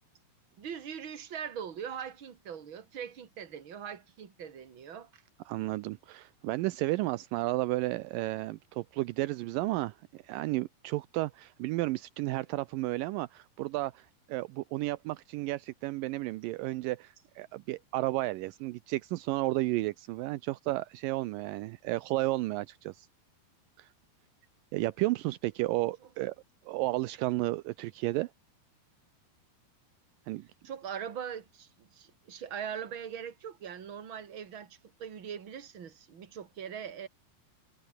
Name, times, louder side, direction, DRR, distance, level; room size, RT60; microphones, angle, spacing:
voice 1, 0.6-5.2 30.6-37.1, right 8 dB, 35° right, 2.6 m, -41 dB
voice 2, 5.5-23.1 23.8-23.9 24.7-26.4 26.7-28.3 30.3-30.5, right 19 dB, 85° right, 2.0 m, -32 dB
omnidirectional pair, 4.6 m